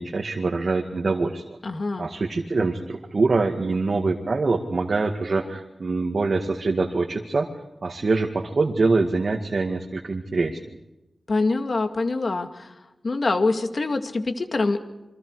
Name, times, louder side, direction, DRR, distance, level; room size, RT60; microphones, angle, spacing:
voice 1, 0.0-1.4 2.0-7.5 7.8-10.6, right 3 dB, 55° right, 2 dB, 2.1 m, -24 dB
voice 2, 1.6-2.1 11.3-12.7 13.0-14.8, left 3 dB, 50° left, 7 dB, 2.3 m, -24 dB
28.5 x 25.0 x 4.9 m, 0.97 s
wide cardioid pair, 115°, 0 cm